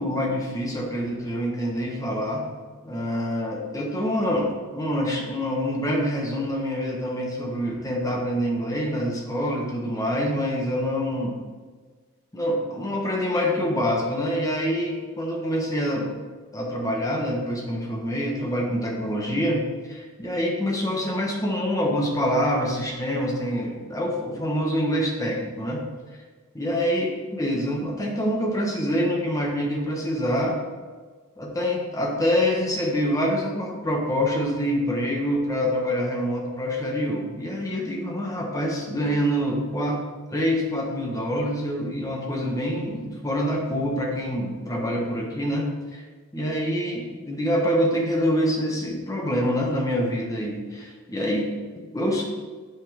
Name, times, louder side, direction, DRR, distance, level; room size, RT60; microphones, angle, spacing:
voice 1, 0.0-2.5 2.8-11.4 12.3-16.2 16.5-25.8 26.5-30.6 31.4-40.0 40.3-46.0 46.3-52.2, equal, 15° left, -1 dB, 1.1 m, -26 dB
9.3 x 5.8 x 3.5 m, 1.5 s
head